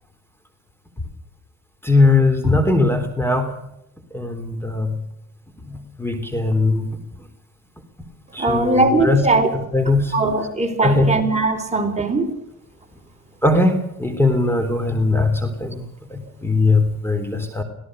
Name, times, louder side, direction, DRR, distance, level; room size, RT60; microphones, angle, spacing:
voice 1, 1.8-3.6 4.1-5.0 5.6-7.0 8.3-9.3 9.7-10.1 10.8-11.1 13.4-15.8 16.1-17.6, left 2 dB, 10° left, 8 dB, 3.6 m, -19 dB
voice 2, 8.4-9.5 10.1-12.3, right 2 dB, 20° right, 3 dB, 4.7 m, -19 dB
24.5 x 17.5 x 6.6 m, 0.80 s
cardioid pair, 90°, 30 cm